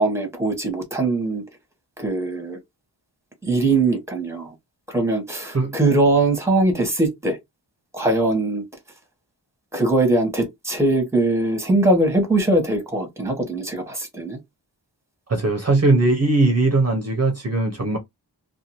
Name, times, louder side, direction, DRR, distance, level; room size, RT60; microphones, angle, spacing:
voice 1, 0.0-1.4 2.0-2.6 3.4-4.5 4.9-7.4 7.9-8.6 9.7-14.4, right 2 dB, 5° right, 1.1 m, -21 dB
voice 2, 15.3-18.0, right 2 dB, 35° right, 0.7 m, -19 dB
2.6 x 2.3 x 2.9 m
wide cardioid pair, 80°, 42 cm